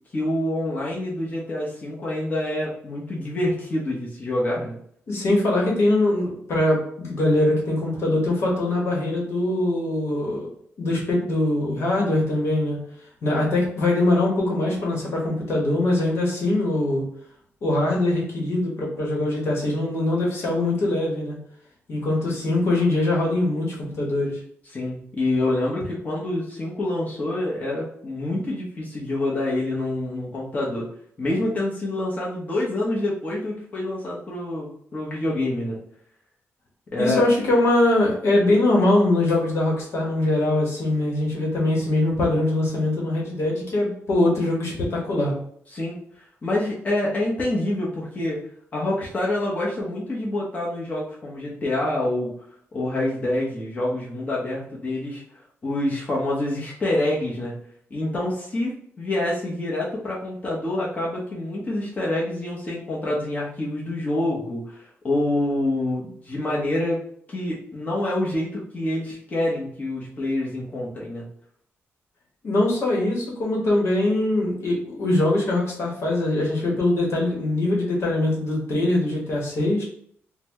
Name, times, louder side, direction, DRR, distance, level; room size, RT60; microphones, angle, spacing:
voice 1, 0.1-4.8 24.7-30.9 31.2-35.8 36.9-37.2 45.7-45.9 46.4-48.4 48.7-52.3 52.7-55.2 55.6-57.5 57.9-67.0 67.3-71.3, left 1 dB, 30° left, -5 dB, 0.9 m, -26 dB
voice 2, 5.1-10.5 10.8-12.8 13.2-17.0 17.6-21.4 21.9-24.4 37.0-45.4 72.4-79.8, left 2 dB, 65° left, -2 dB, 1.2 m, -22 dB
4.0 x 2.2 x 3.0 m, 0.65 s
cardioid pair, 115°, 5 cm